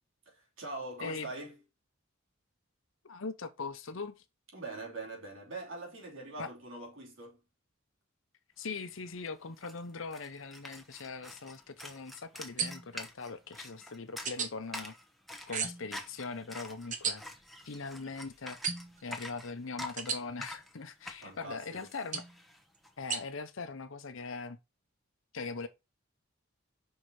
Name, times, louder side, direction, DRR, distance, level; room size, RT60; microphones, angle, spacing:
voice 1, 0.2-1.6 4.5-7.4 21.2-21.9, right 2 dB, 70° right, 3.1 m, -43 dB
voice 2, 1.0-1.3 3.0-4.2 6.4-6.5 8.6-14.9 15.5-17.2 17.7-18.6 19.0-22.2 23.0-24.6 25.3-25.7, left 4 dB, 70° left, 0.8 m, -41 dB
sound 1, 8.8-8.9 9.0-22.9, left 1 dB, ahead, 0.9 m, -47 dB
sound 2, 12.6-13.0 14.2-14.5 15.5-15.9 16.9-17.1 18.6-19.0 20.0-20.2 22.1-22.4 23.1-23.2, right 6 dB, 35° right, 1.0 m, -34 dB
5.6 x 4.5 x 4.7 m
head